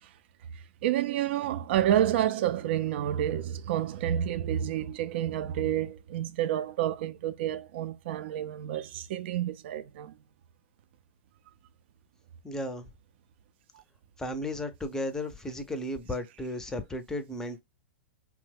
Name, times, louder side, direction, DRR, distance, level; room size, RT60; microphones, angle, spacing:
voice 1, 0.8-10.1, right 11 dB, 65° right, 0.4 m, -29 dB
voice 2, 12.4-12.9 14.2-17.6, left 1 dB, 10° left, 0.5 m, -34 dB
2.9 x 2.0 x 3.3 m
hypercardioid pair, 125°, 6 cm